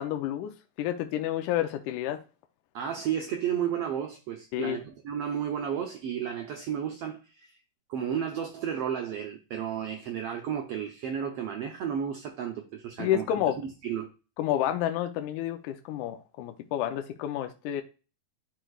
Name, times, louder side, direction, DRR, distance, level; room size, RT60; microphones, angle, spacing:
voice 1, 0.0-2.2 4.5-4.8 13.0-13.6 14.4-17.8, left 11 dB, 80° left, 2.1 m, -30 dB
voice 2, 2.7-7.6 7.9-13.2 13.8-14.1, right 8 dB, 75° right, 1.4 m, -32 dB
11.0 x 4.4 x 2.4 m
omnidirectional pair, 3.6 m